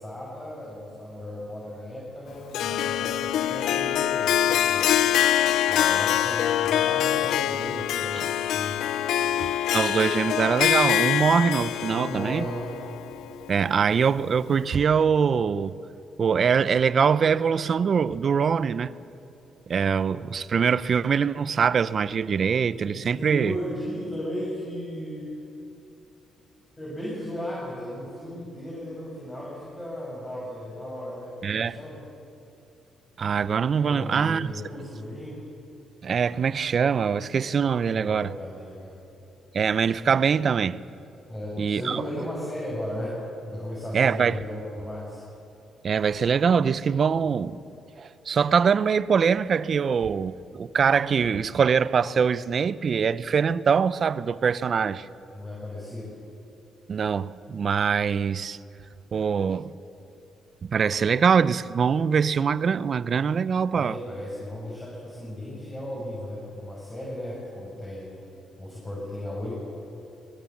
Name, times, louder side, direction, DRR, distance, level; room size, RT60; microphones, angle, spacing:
voice 1, 0.0-4.9 5.7-8.8 11.9-12.8 23.0-25.4 26.8-32.0 33.8-35.4 37.9-39.0 41.3-43.2 43.5-45.2 55.3-56.2 63.7-68.2 68.6-69.5, equal, 20° left, 6.4 m, -35 dB
Harp, 2.5-13.8, left 11 dB, 80° left, 0.5 m, -24 dB
voice 2, 9.7-12.5 13.5-15.8 16.2-18.9 19.7-23.5 31.4-31.8 33.2-34.5 36.0-38.3 39.5-40.8 41.6-42.0 43.9-44.4 45.8-47.6 48.0-55.1 56.9-58.6 59.1-59.7 60.7-64.0, right 6 dB, 50° right, 0.6 m, -23 dB
22.0 x 20.5 x 7.2 m
cardioid pair, 90°, 0 cm